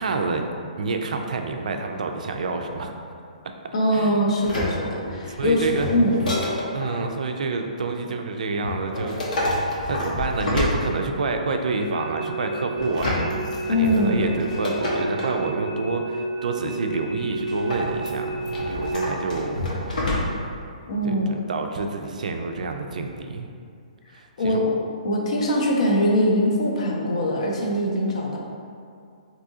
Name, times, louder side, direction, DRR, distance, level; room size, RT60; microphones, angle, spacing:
voice 1, 0.0-2.9 3.9-4.2 5.4-5.9 6.7-13.2 13.7-20.2 21.0-23.5 24.1-24.7, right 3 dB, 70° right, 4 dB, 0.3 m, -28 dB
voice 2, 3.7-6.2 13.7-14.3 20.9-21.3 24.4-24.8 25.0-28.4, equal, 50° left, -1 dB, 0.5 m, -22 dB
sound 1, 4.4-7.0 8.6-11.4 12.8-15.4 17.5-20.6 20.9-21.0, left 1 dB, 80° left, 0.9 m, -28 dB
sound 2, 11.7-18.9, right 2 dB, 20° right, 0.9 m, -32 dB
3.5 x 2.7 x 2.7 m, 2.4 s
hypercardioid pair, 175°, 4 cm